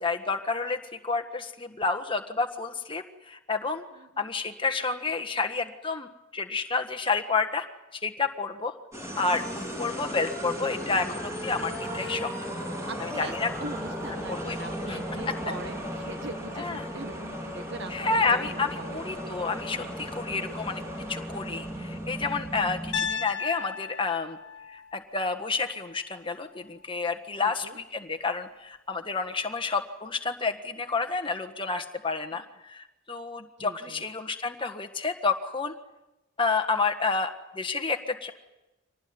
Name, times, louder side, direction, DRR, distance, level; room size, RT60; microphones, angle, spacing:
voice 1, 0.0-3.8 4.2-7.7 7.9-8.7 9.2-12.3 13.0-13.5 14.3-14.6 14.9-15.0 16.6-16.9 17.9-20.8 21.1-24.4 24.7-35.7 36.4-38.3, left 4 dB, 25° left, 6 dB, 1.5 m, -30 dB
voice 2, 4.0-4.3 12.9-13.3 13.6-19.1 21.8-22.2 27.4-27.8 33.6-34.0, right 1 dB, 55° right, 8 dB, 1.6 m, -42 dB
sound 1, 8.9-23.2, equal, 15° right, 7.0 m, -36 dB
Piano, 22.9-27.0, left 7 dB, 60° left, 1.3 m, -37 dB
25.0 x 19.0 x 9.6 m, 1.0 s
head